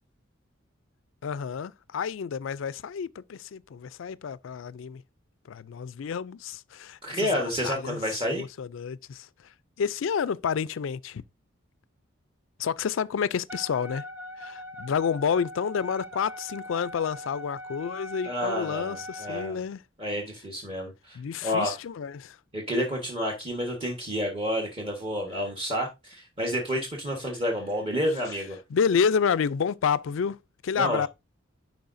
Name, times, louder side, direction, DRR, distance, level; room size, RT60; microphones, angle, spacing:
voice 1, 1.2-5.0 5.5-7.3 7.6-9.3 9.8-11.2 12.6-14.0 14.4-19.8 21.1-22.4 28.7-31.1, left 6 dB, 75° left, 0.4 m, -29 dB
voice 2, 7.0-8.4 18.2-19.6 20.0-21.8 22.5-28.6 30.7-31.0, equal, 30° right, 1.3 m, -30 dB
Wind instrument woodwind instrument, 13.5-19.6, equal, 10° right, 0.9 m, -41 dB
10.5 x 4.5 x 2.6 m
head